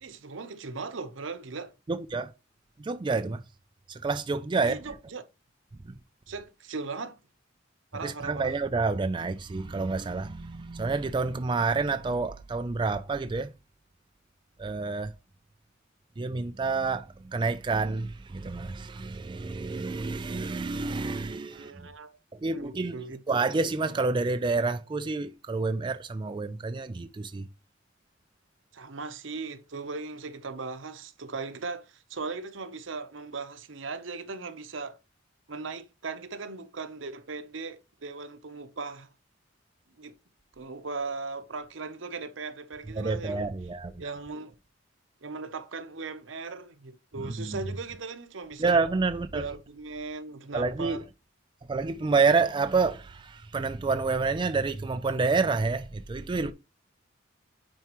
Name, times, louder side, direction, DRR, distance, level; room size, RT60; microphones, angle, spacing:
voice 1, 0.0-1.7 4.6-5.2 6.3-7.2 7.9-8.6 21.5-22.1 22.5-23.2 28.7-35.0 35.5-39.1 40.0-40.2 40.6-43.5 44.0-44.5 45.2-48.8 49.3-51.0, right 4 dB, 70° right, 0.9 m, -38 dB
voice 2, 1.9-2.3 2.8-3.4 3.9-4.8 5.8-6.0 8.0-13.5 14.6-15.1 16.2-21.9 22.4-23.0 23.3-27.5 43.0-44.0 47.2-47.6 48.6-49.5 50.5-51.0 51.7-56.5, right 4 dB, 25° right, 0.4 m, -28 dB
9.1 x 4.6 x 3.0 m
head